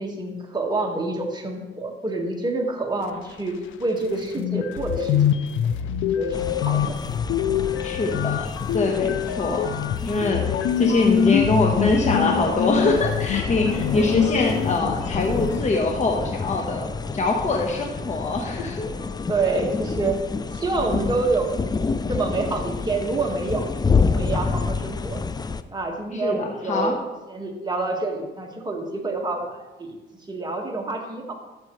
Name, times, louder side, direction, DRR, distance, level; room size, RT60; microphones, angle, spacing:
voice 1, 0.0-5.5 6.1-6.9 9.3-9.6 19.3-20.2 20.5-21.6 22.1-23.7 24.1-25.2 25.7-27.0 27.3-29.4 29.8-30.0 30.3-31.3, right 3 dB, 20° right, 1 dB, 1.8 m, -27 dB
sound 1, 4.0-4.1 4.4-15.6, left 9 dB, 80° left, 0.6 m, -24 dB
sound 2, 6.3-25.6, left 4 dB, 20° left, 0.4 m, -29 dB
voice 2, 7.8-8.5 8.7-9.8 10.0-10.5 10.8-18.9 26.1-27.0, left 2 dB, 35° left, 1 dB, 1.2 m, -23 dB
12.5 x 7.4 x 3.2 m, 1.2 s
cardioid pair, 90°, 20 cm